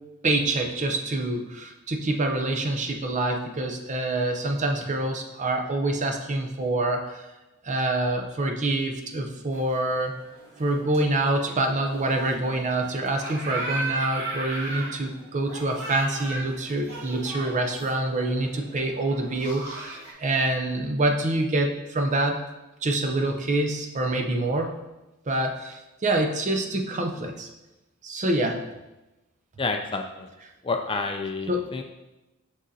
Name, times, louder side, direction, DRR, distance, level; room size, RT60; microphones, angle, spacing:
voice 1, 0.2-7.3 7.6-10.2 10.6-22.4 22.8-24.7 25.3-27.5 28.0-28.6 31.5-31.7, right 2 dB, 35° right, 4 dB, 0.6 m, -26 dB
sound 1, 9.5-20.1, right 2 dB, 50° right, 2.1 m, -37 dB
voice 2, 29.6-30.3 30.6-31.8, left 3 dB, 25° left, 4 dB, 0.4 m, -29 dB
6.3 x 6.1 x 2.7 m, 1.0 s
head